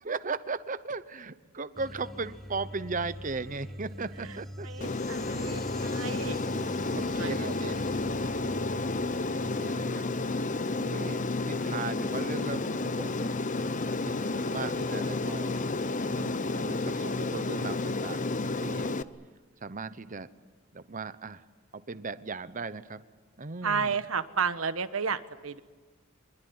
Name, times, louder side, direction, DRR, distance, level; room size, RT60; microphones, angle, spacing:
voice 1, 0.0-4.9 6.5-6.7 7.1-8.1 9.4-10.0 10.8-13.3 14.0-15.6 16.1-18.2 18.6-18.9 19.6-20.3 20.7-21.4 21.7-23.0 23.4-24.0, right 4 dB, 40° right, 13 dB, 0.9 m, -37 dB
sound 1, 1.8-10.9, equal, ahead, 1.6 m, -44 dB
voice 2, 4.6-6.4 7.0-8.6 23.6-25.6, right 5 dB, 85° right, 12 dB, 1.3 m, -33 dB
Aircraft, 4.8-19.0, left 3 dB, 40° left, 0.8 m, -31 dB
24.5 x 22.0 x 9.6 m, 1.4 s
head